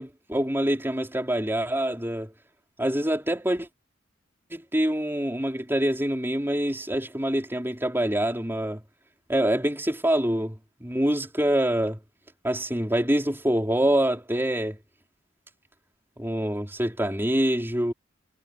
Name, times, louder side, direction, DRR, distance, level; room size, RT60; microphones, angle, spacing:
voice 1, 0.0-2.3 2.8-3.7 4.5-8.8 9.3-12.0 12.4-14.8 16.2-17.9, right 1 dB, 10° right, 4.1 m, -25 dB
head